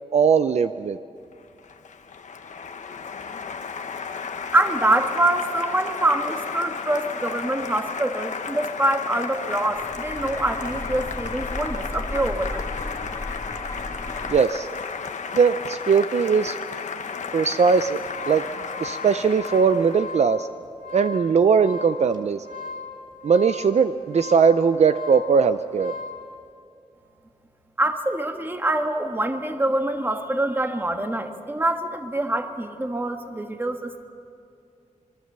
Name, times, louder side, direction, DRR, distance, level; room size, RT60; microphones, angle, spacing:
voice 1, 0.1-1.0 14.3-14.7 15.3-16.6 17.3-18.4 18.8-20.5 20.9-22.4 23.2-25.9, right 6 dB, 60° right, 10 dB, 0.6 m, -20 dB
Applause, 1.3-20.2, left 5 dB, 70° left, 1.2 m, -33 dB
voice 2, 4.5-12.6 27.8-34.1, right 1 dB, 15° right, 5 dB, 1.5 m, -25 dB
sound 1, 9.5-14.4, left 2 dB, 20° left, 2.1 m, -35 dB
sound 2, 17.8-26.3, left 4 dB, 85° right, 2.4 m, -38 dB
26.5 x 23.0 x 6.8 m, 2.5 s
wide cardioid pair, 145°, 13 cm